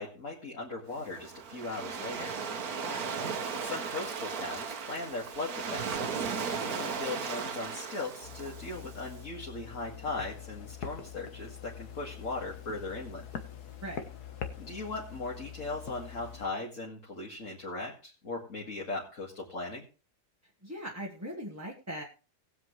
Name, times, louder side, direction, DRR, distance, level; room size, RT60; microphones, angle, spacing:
voice 1, 0.0-2.3 3.6-13.2 14.6-19.9, left 3 dB, 50° left, -4 dB, 2.4 m, -38 dB
Waves surf, 0.9-9.1, right 5 dB, 60° right, 1.6 m, -36 dB
voice 2, 2.8-3.2 13.8-14.0 20.6-22.0, equal, 10° right, 0 dB, 1.4 m, -40 dB
sound 1, 8.2-16.5, left 8 dB, 65° left, 1.8 m, -44 dB
19.5 x 7.8 x 3.2 m, 0.34 s
omnidirectional pair, 1.8 m